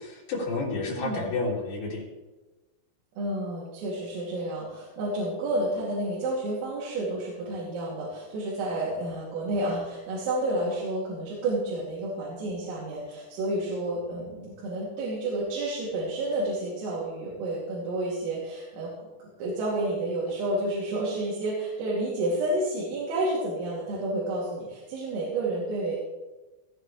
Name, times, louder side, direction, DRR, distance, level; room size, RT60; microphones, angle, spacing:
voice 1, 0.0-2.0, left 3 dB, 50° left, -2 dB, 3.8 m, -30 dB
voice 2, 0.9-1.2 3.2-26.0, right 1 dB, 85° right, -6 dB, 5.5 m, -30 dB
16.5 x 15.5 x 3.3 m, 1.1 s
omnidirectional pair, 5.8 m